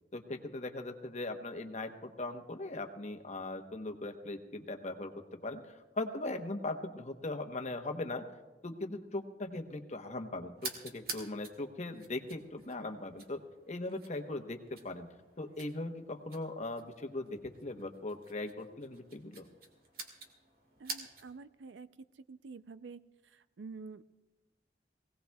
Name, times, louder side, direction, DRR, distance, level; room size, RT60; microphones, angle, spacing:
voice 1, 0.1-5.1 5.4-8.2 8.6-13.4 13.7-15.1 15.4-19.5, left 2 dB, 40° left, 5 dB, 1.0 m, -39 dB
sound 1, 10.6-21.5, right 4 dB, 55° right, 1.8 m, -49 dB
voice 2, 20.8-21.9 22.1-24.0, right 4 dB, 90° right, 14 dB, 0.5 m, -48 dB
23.0 x 17.0 x 2.3 m, 1.2 s
head